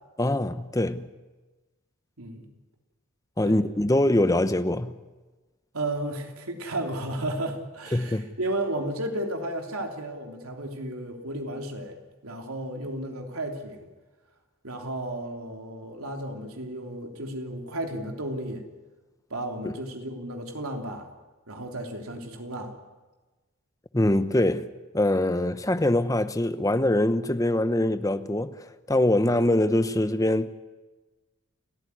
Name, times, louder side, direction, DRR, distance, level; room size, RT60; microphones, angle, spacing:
voice 1, 0.2-1.1 3.4-5.0 7.9-8.3 19.6-19.7 23.9-24.7 24.9-30.5, left 1 dB, 15° left, 0.8 m, -23 dB
voice 2, 2.2-2.5 3.4-3.6 5.7-13.9 14.6-18.7 19.3-21.1 21.5-22.7, right 1 dB, 85° right, 3.5 m, -33 dB
29.0 x 14.0 x 9.8 m
head